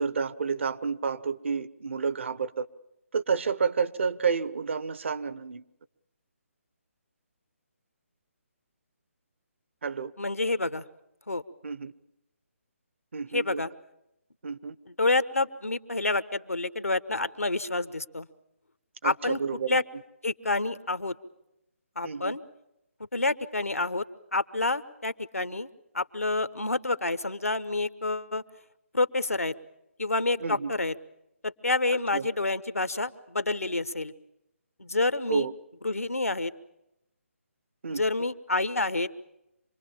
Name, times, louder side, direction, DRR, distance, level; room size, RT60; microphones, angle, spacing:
voice 1, 0.0-2.7 3.1-5.6 9.8-10.1 11.6-11.9 13.1-13.6 14.4-14.8 19.0-19.8 22.0-22.4 30.4-30.7 32.1-32.3 35.3-35.5 37.8-38.0, right 5 dB, 55° right, 14 dB, 1.0 m, -30 dB
voice 2, 10.2-10.8 11.3-11.4 13.3-13.7 15.0-18.3 19.0-19.4 19.7-19.8 20.2-21.2 22.0-22.4 23.1-24.0 24.3-28.4 28.9-29.5 30.0-30.9 31.4-34.1 34.8-35.5 35.8-36.5 37.9-39.1, left 2 dB, 85° left, 13 dB, 1.2 m, -28 dB
27.0 x 21.0 x 7.3 m, 0.86 s
figure-of-eight pair, 145°, 8 cm